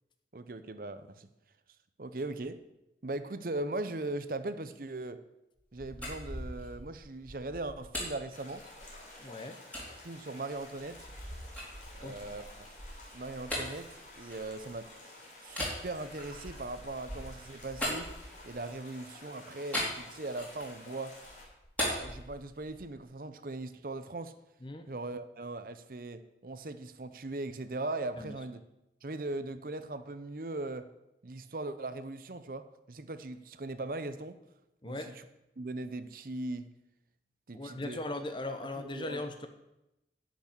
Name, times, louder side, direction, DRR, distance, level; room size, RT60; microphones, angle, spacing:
voice 1, 0.3-1.3 2.0-2.6 3.0-5.2 5.7-8.6 10.0-11.1 11.9-12.4 13.1-13.9 14.2-14.9 15.4-18.1 18.4-21.2 21.8-24.3 24.9-28.6 29.0-30.9 31.2-34.4 34.8-35.0 35.6-36.7 37.5-38.0 38.8-39.2, right 2 dB, 50° right, 11 dB, 0.7 m, -39 dB
sound 1, 5.6-9.1 9.7-9.9 10.5-14.9 15.5-18.7 19.7-20.8 21.1-22.9, equal, 10° left, 3.3 m, -40 dB
sound 2, 8.3-21.4, left 1 dB, 45° left, 3.6 m, -52 dB
voice 2, 9.2-9.6 12.0-12.2 24.6-24.9 28.2-28.4 34.8-35.1 37.5-39.5, left 2 dB, 25° left, 7 dB, 0.8 m, -39 dB
10.5 x 6.2 x 8.5 m, 0.91 s
head